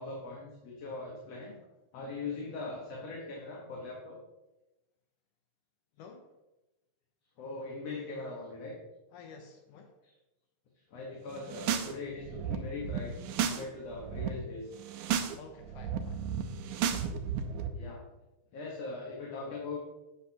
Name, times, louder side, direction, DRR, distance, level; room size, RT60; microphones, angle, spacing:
voice 1, 0.0-1.6 1.9-4.2 7.4-8.8 10.9-14.8 17.7-18.0 18.5-19.8, left 3 dB, 55° left, -2 dB, 2.3 m, -41 dB
voice 2, 6.0-6.3 9.1-10.0 15.4-16.3, left 4 dB, 80° left, 4 dB, 2.3 m, -51 dB
sound 1, 11.4-11.9 12.2-13.6 13.9-14.3 14.8-15.3 15.6-17.7, right 8 dB, 75° right, 2.1 m, -33 dB
11.0 x 9.0 x 2.9 m, 1.0 s
omnidirectional pair, 3.8 m